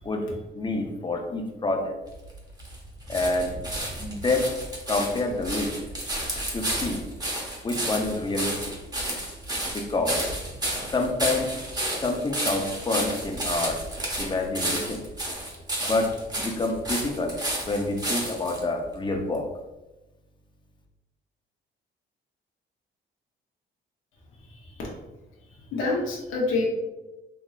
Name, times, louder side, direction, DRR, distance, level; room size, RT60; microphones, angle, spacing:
voice 1, 0.0-1.9 3.1-3.5 4.0-4.5 4.9-5.7 6.5-7.1 7.6-8.8 9.7-10.3 10.9-11.5 12.0-13.8 14.2-15.0 15.8-17.4 17.7-19.5, left 2 dB, 25° left, 2 dB, 0.6 m, -27 dB
sound 1, 2.1-18.6 19.3-19.4, right 1 dB, 20° right, 1.0 m, -31 dB
voice 2, 24.4-24.9 25.4-26.7, left 3 dB, 90° left, -3 dB, 0.8 m, -28 dB
3.7 x 3.0 x 2.4 m, 1.0 s
cardioid pair, 90°, 20 cm